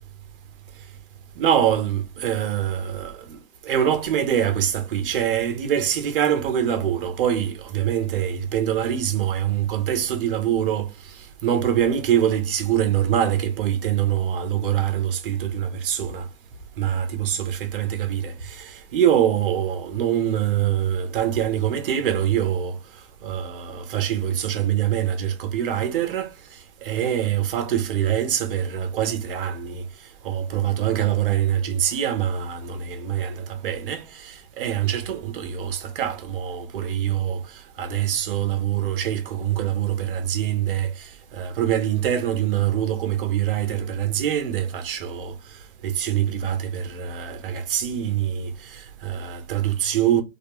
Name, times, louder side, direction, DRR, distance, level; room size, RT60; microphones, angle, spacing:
voice 1, 1.4-10.9 11.4-16.3 16.8-22.8 23.2-26.3 26.8-29.8 30.2-45.3 45.8-50.2, right 10 dB, 45° right, 0.6 m, -24 dB
2.3 x 2.1 x 2.8 m
hypercardioid pair, 145°, 39 cm